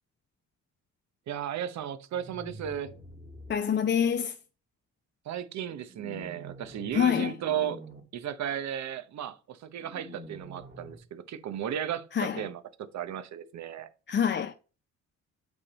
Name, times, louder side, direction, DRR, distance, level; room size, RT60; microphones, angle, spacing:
voice 1, 1.3-2.9 5.3-7.8 8.1-13.9, right 9 dB, 65° right, 0.9 m, -35 dB
sound 1, 2.1-3.5 5.9-7.0 7.3-8.0 9.8-11.0, right 1 dB, 35° right, 2.1 m, -46 dB
voice 2, 3.5-4.4 6.9-7.3 12.1-12.4 14.1-14.5, left 8 dB, 35° left, 0.5 m, -26 dB
8.4 x 3.4 x 4.2 m
cardioid pair, 90°, 30 cm